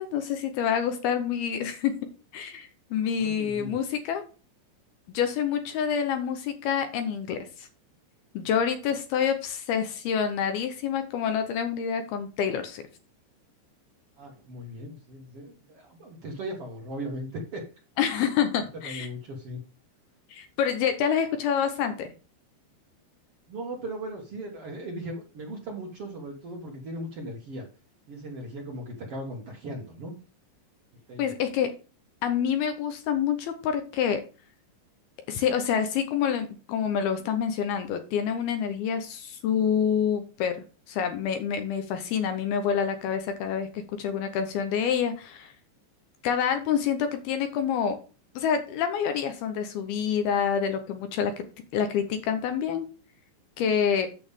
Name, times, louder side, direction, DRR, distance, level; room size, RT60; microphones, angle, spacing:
voice 1, 0.0-1.9 2.3-4.2 5.1-7.7 8.3-12.8 18.0-19.1 20.3-22.1 31.2-31.7 32.2-34.2 35.3-40.6 40.9-45.5 46.2-48.0 48.4-51.4 51.7-52.9 53.6-54.1, left 8 dB, 75° left, 8 dB, 2.4 m, -27 dB
voice 2, 3.1-3.8 14.2-17.6 18.8-19.6 23.5-27.7 28.1-30.1 31.1-31.3, right 1 dB, 60° right, -1 dB, 1.5 m, -38 dB
9.0 x 7.0 x 3.6 m, 0.35 s
omnidirectional pair, 5.2 m